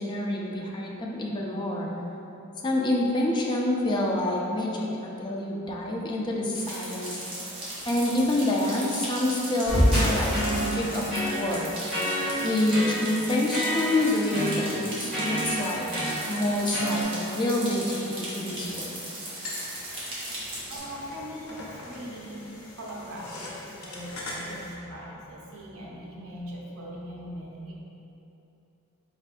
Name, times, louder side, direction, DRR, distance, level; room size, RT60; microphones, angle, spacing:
voice 1, 0.0-1.9 2.6-7.2 7.9-11.7 12.4-15.9 16.3-19.0, left 1 dB, 20° left, -2 dB, 0.3 m, -27 dB
sound 1, 6.5-20.8, right 1 dB, 25° right, 0.8 m, -37 dB
sound 2, 9.7-17.0, equal, ahead, 1.3 m, -28 dB
sound 3, 19.4-24.7, left 1 dB, 80° left, 0.7 m, -41 dB
voice 2, 20.6-27.7, equal, 75° right, -4 dB, 0.7 m, -40 dB
4.4 x 3.5 x 2.4 m, 2.9 s
head